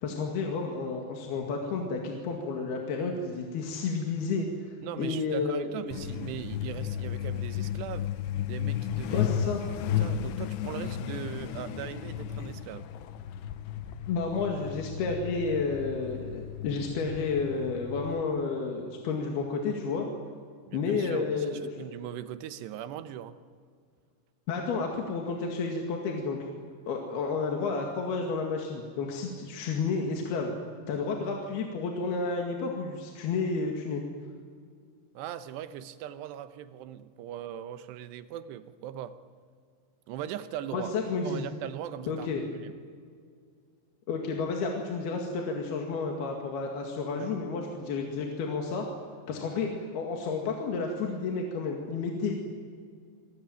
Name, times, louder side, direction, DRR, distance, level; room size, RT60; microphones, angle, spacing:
voice 1, 0.0-4.5 5.0-5.8 9.1-9.6 14.1-20.1 20.7-21.8 24.5-26.4 26.9-30.5 30.9-34.0 40.7-41.5 42.1-42.4 44.1-48.9 49.3-52.4, left 4 dB, 70° left, 1 dB, 3.9 m, -31 dB
voice 2, 4.8-8.1 8.5-9.6 10.0-12.9 20.7-21.5 21.8-23.4 35.1-39.2 40.1-41.0 41.2-42.7 47.2-47.3, right 11 dB, 85° right, 12 dB, 3.2 m, -40 dB
Truck, 5.9-18.2, left 9 dB, 85° left, 3.1 m, -34 dB
27.0 x 21.5 x 9.1 m, 2.1 s
omnidirectional pair, 4.7 m